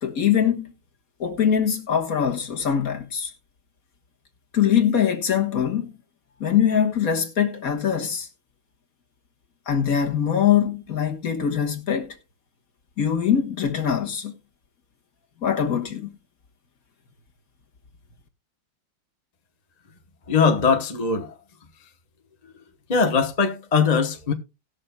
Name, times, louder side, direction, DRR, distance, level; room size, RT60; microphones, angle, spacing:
voice 1, 0.0-0.7 1.2-3.3 4.5-5.9 6.4-8.3 9.7-12.2 13.0-14.3 15.4-16.1, left 8 dB, 45° left, 1.6 m, -22 dB
voice 2, 20.3-21.4 22.9-24.3, left 5 dB, 30° left, 0.8 m, -21 dB
19.0 x 6.5 x 2.3 m
omnidirectional pair, 2.3 m